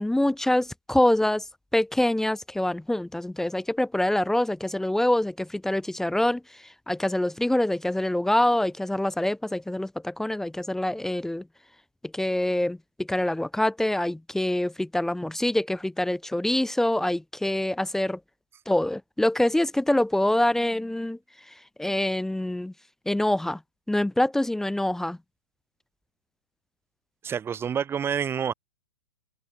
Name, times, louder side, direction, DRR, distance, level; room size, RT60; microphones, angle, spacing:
voice 1, 0.0-1.4 1.7-6.4 6.9-11.4 12.1-18.2 18.7-21.2 21.8-22.7 23.1-23.6 23.9-25.2, left 1 dB, 5° left, 1.4 m, -25 dB
voice 2, 27.2-28.5, right 8 dB, 15° right, 1.4 m, -28 dB
figure-of-eight pair, 110°, 16 cm